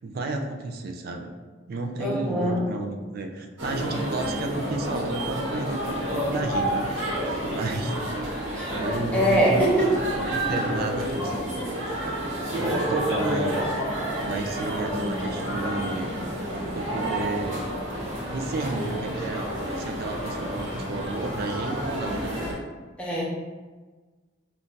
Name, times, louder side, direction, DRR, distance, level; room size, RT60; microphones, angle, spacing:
voice 1, 0.0-1.3 1.7-6.9 7.4-7.9 8.4-11.5 12.6-13.6 14.2-16.1 16.7-17.6 18.3-22.3, right 2 dB, 50° right, 3 dB, 0.3 m, -32 dB
voice 2, 2.0-2.6 8.5-8.6 9.1-10.0 18.7-18.9 23.0-23.2, right 1 dB, 5° left, -6 dB, 0.6 m, -23 dB
sound 1, 3.6-22.5, right 1 dB, 75° right, 0.9 m, -29 dB
2.6 x 2.3 x 3.8 m, 1.3 s
head